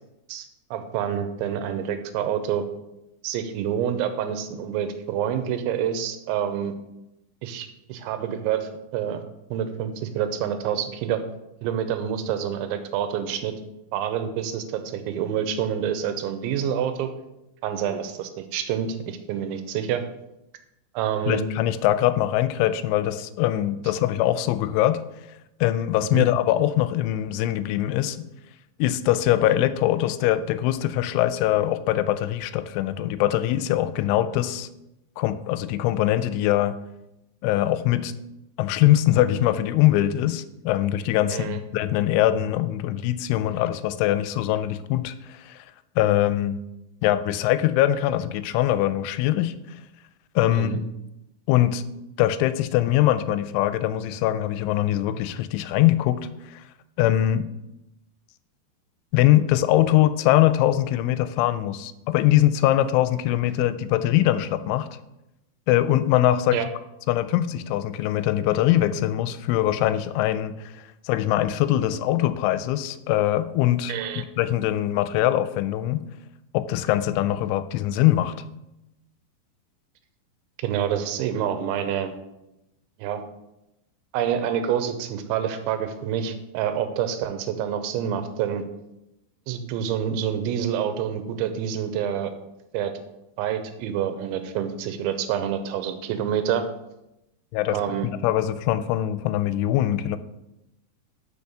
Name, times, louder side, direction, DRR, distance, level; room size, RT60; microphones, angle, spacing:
voice 1, 0.3-2.7 3.2-6.7 7.4-9.2 9.5-11.2 11.6-13.5 13.9-17.1 17.6-20.0 20.9-21.5 26.1-26.3 41.3-41.6 50.5-50.8 66.5-66.7 73.9-74.2 80.6-82.1 83.0-83.2 84.1-88.6 89.5-92.3 92.7-92.9 93.4-96.7 97.7-98.1, right 9 dB, 85° right, 9 dB, 2.9 m, -27 dB
voice 2, 21.3-25.0 25.6-28.2 28.8-34.7 35.2-36.8 37.4-38.1 38.6-45.6 46.0-46.6 47.0-49.5 50.4-50.8 51.5-51.8 52.2-56.6 57.0-57.5 59.1-64.9 65.7-66.6 67.1-76.0 76.5-78.3 97.5-97.8 98.2-100.2, left 13 dB, 85° left, 13 dB, 3.0 m, -22 dB
6.4 x 5.4 x 6.6 m, 0.90 s
omnidirectional pair, 5.4 m